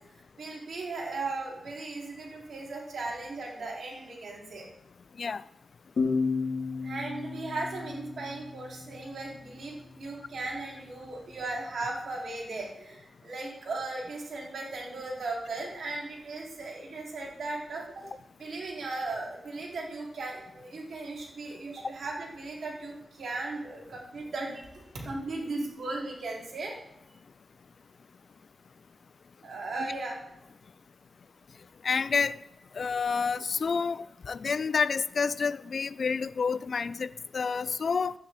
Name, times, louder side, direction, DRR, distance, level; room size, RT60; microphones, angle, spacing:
voice 1, 0.4-4.7 6.8-18.1 18.4-26.7 29.4-30.2, right 3 dB, 85° right, -3 dB, 3.6 m, -37 dB
sound 1, 6.0-9.4, left 4 dB, 80° left, 2.1 m, -32 dB
voice 2, 31.8-32.4 32.7-38.1, left 5 dB, 65° left, 17 dB, 0.3 m, -29 dB
12.0 x 9.8 x 3.7 m, 0.88 s
wide cardioid pair, 80°, 0 cm